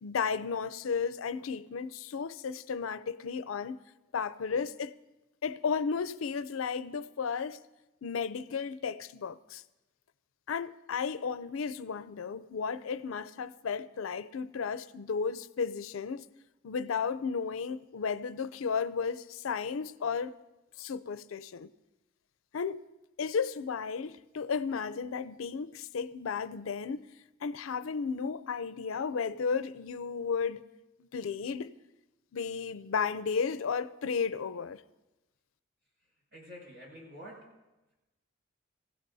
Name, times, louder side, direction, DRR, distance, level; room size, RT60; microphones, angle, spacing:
voice 1, 0.0-3.8 4.1-4.9 5.4-7.6 8.0-9.6 10.5-16.3 16.6-20.4 20.8-21.7 22.5-22.8 23.2-27.1 27.4-30.6 31.0-31.7 32.3-34.8, left 5 dB, 90° left, 0.5 m, -34 dB
voice 2, 36.3-37.6, equal, 55° right, 6.0 m, -48 dB
24.5 x 15.5 x 2.7 m
head